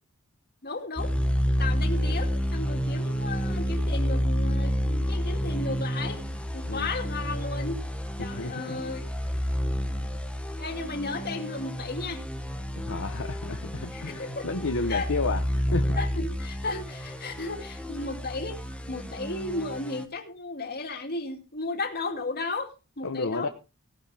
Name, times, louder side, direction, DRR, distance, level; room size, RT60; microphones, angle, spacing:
voice 1, 0.6-1.2 1.6-6.2 6.5-7.8 8.2-9.0 10.6-12.2 13.9-14.5 14.9-15.1 15.9-18.6 18.9-23.5, left 3 dB, 45° left, 4 dB, 2.6 m, -34 dB
sound 1, 1.0-20.0, equal, 5° left, 1.4 m, -30 dB
voice 2, 8.2-8.8 12.8-16.0 23.0-23.5, left 3 dB, 65° left, 6 dB, 1.0 m, -32 dB
16.5 x 11.0 x 3.4 m, 0.30 s
head